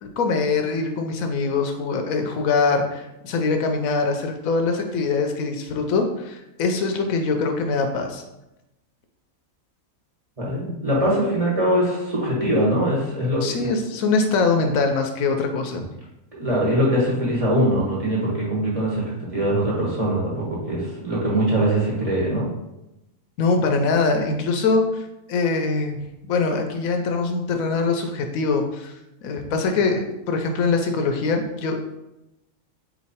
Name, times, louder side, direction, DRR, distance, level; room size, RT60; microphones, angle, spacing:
voice 1, 0.0-8.2 13.4-15.8 23.4-26.0 26.2-28.9 29.2-31.8, left 4 dB, 75° left, 5 dB, 1.0 m, -23 dB
voice 2, 10.4-13.7 16.3-19.0 19.3-22.5, right 1 dB, 25° right, -6 dB, 1.2 m, -22 dB
4.1 x 3.0 x 4.2 m, 0.92 s
omnidirectional pair, 1.5 m